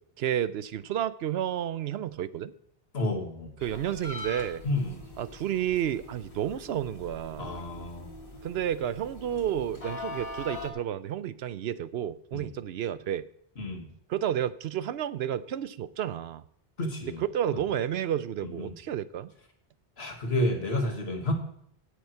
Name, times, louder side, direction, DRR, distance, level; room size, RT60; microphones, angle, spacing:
voice 1, 0.2-2.5 3.6-4.6 5.2-7.5 8.4-13.3 14.1-16.4 17.2-19.3, right 10 dB, 80° right, 15 dB, 0.9 m, -31 dB
voice 2, 2.9-3.5 4.6-5.1 7.4-8.2 12.3-12.5 13.6-13.9 16.8-17.2 18.4-18.7 20.0-21.3, left 1 dB, 90° left, 3 dB, 2.0 m, -30 dB
sound 1, 3.6-10.7, left 2 dB, 35° left, 2.1 m, -42 dB
17.0 x 6.5 x 4.5 m, 0.67 s
omnidirectional pair, 1.0 m